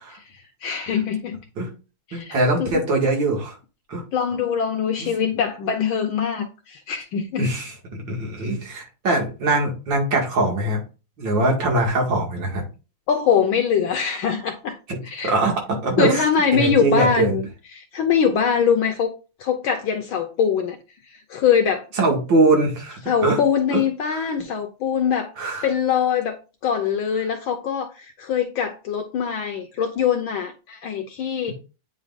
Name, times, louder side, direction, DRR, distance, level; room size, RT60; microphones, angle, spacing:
voice 1, 0.3-1.4 2.1-2.8 4.1-7.5 13.1-14.8 15.0-15.3 16.0-19.1 19.4-20.8 21.0-21.8 23.0-25.3 25.6-31.5, left 7 dB, 70° left, 1.5 m, -23 dB
voice 2, 2.1-3.6 3.9-4.0 5.0-5.1 7.4-7.7 8.1-10.8 11.2-12.6 14.9-15.0 15.2-16.2 16.5-17.3 22.0-23.4 23.7-23.8 24.1-24.2 25.4-25.7, right 2 dB, 60° right, 2.7 m, -22 dB
8.9 x 5.3 x 2.5 m
omnidirectional pair, 2.4 m